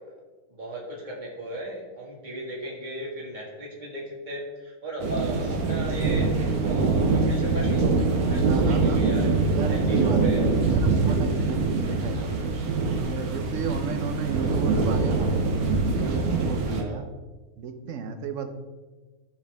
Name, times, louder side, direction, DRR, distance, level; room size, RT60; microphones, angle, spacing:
voice 1, 0.5-6.3 6.6-7.9 8.2-9.3 9.6-10.5 11.9-12.2 16.6-17.0, right 1 dB, 30° right, -4 dB, 2.1 m, -36 dB
sound 1, 5.0-16.8, right 3 dB, 80° right, 1.5 m, -24 dB
voice 2, 8.4-9.0 9.5-12.4 13.0-15.4 15.8-17.2 17.6-18.5, right 5 dB, 60° right, 7 dB, 1.1 m, -33 dB
13.5 x 4.7 x 3.5 m, 1.3 s
omnidirectional pair, 1.6 m